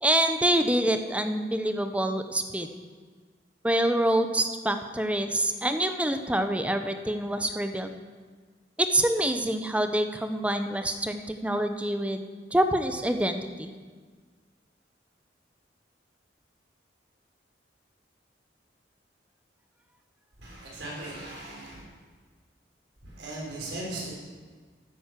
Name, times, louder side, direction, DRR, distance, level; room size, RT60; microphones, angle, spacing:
voice 1, 0.0-2.7 3.6-7.9 8.8-13.7, right 1 dB, 5° right, 8 dB, 0.6 m, -26 dB
voice 2, 20.4-21.8 23.1-24.1, right 1 dB, 70° right, -4 dB, 4.4 m, -38 dB
10.0 x 9.3 x 7.4 m, 1.5 s
head